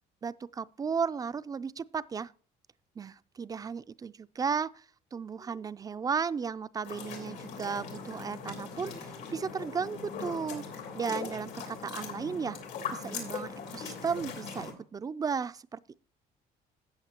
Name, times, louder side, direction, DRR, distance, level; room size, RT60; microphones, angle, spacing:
voice 1, 0.2-2.3 3.0-4.8 5.1-10.7 10.9-12.6 12.9-15.9, right 6 dB, 20° right, 0.3 m, -35 dB
sound 1, 6.8-14.7, left 5 dB, 85° left, 3.2 m, -40 dB
13.5 x 8.5 x 2.9 m
cardioid pair, 110°, 17 cm